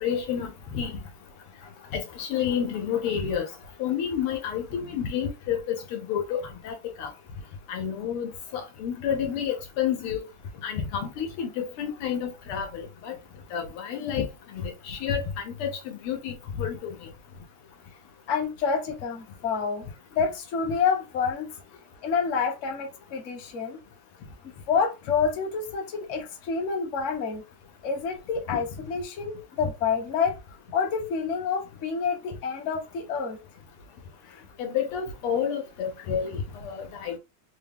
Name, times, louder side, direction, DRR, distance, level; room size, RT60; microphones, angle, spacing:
voice 1, 0.0-1.0 1.9-3.5 3.8-7.1 7.7-10.2 10.6-13.1 13.5-14.3 14.5-17.0 34.6-37.2, left 8 dB, 80° left, 1.8 m, -30 dB
voice 2, 18.3-21.5 22.0-23.8 24.4-27.4 27.8-30.4 30.7-33.4 34.3-34.4, left 6 dB, 45° left, 1.0 m, -28 dB
4.4 x 2.3 x 3.4 m
omnidirectional pair, 2.4 m